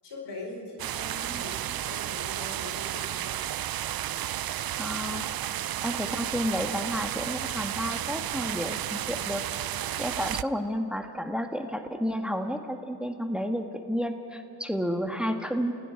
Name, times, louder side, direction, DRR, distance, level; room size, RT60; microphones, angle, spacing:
voice 1, 0.0-3.4, left 2 dB, 90° left, 0 dB, 4.3 m, -42 dB
sound 1, 0.8-10.4, right 12 dB, 60° right, 0.5 m, -32 dB
voice 2, 4.8-5.3 5.8-9.4 10.0-15.7, equal, ahead, 5 dB, 1.7 m, -31 dB
28.0 x 16.0 x 5.9 m, 2.7 s
cardioid pair, 50°, 41 cm